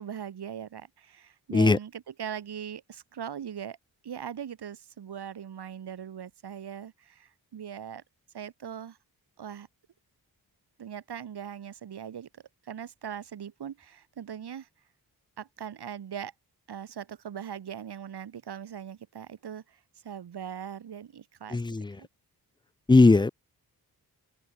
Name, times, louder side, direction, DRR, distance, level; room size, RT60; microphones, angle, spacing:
voice 1, 0.0-3.8 4.0-8.0 8.3-9.0 9.4-9.7 10.8-12.3 12.6-14.7 15.4-16.3 16.7-19.8 20.0-22.1, right 8 dB, 90° right, 3.3 m, -40 dB
voice 2, 21.5-22.0 22.9-23.3, left 3 dB, 10° left, 0.5 m, -19 dB
open air
wide cardioid pair, 115°, 38 cm